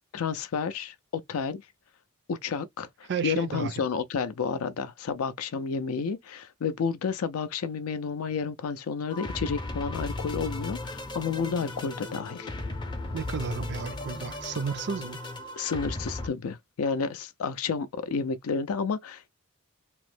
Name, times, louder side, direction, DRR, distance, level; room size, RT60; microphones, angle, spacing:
voice 1, 0.1-1.6 2.3-12.5 15.6-19.3, left 5 dB, 90° left, 0.4 m, -31 dB
voice 2, 3.1-3.8 13.1-15.2, right 6 dB, 55° right, 0.4 m, -32 dB
sound 1, 9.1-16.3, left 2 dB, 20° left, 0.5 m, -36 dB
3.0 x 2.0 x 3.1 m
head